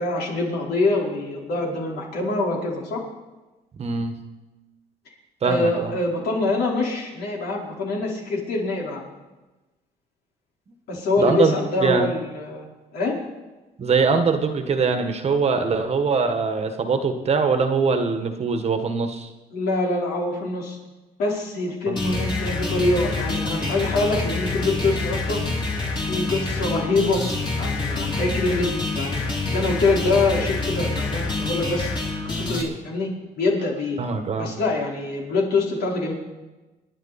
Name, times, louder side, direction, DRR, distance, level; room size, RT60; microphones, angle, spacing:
voice 1, 0.0-3.0 5.4-9.1 10.9-12.7 12.9-13.1 19.5-20.8 21.2-25.4 26.0-27.2 27.6-29.2 29.5-31.9 32.2-33.1 33.4-34.0 34.4-36.1, left 2 dB, 70° left, -2 dB, 4.5 m, -24 dB
voice 2, 3.8-4.1 5.4-5.9 11.2-11.5 11.8-12.1 13.8-19.3 21.9-22.0 28.2-28.5 34.0-34.5, right 4 dB, 40° right, 7 dB, 1.6 m, -22 dB
sound 1, 22.0-32.6, left 3 dB, 25° left, 3.2 m, -27 dB
28.5 x 10.5 x 4.3 m, 1.1 s
cardioid pair, 110°, 17 cm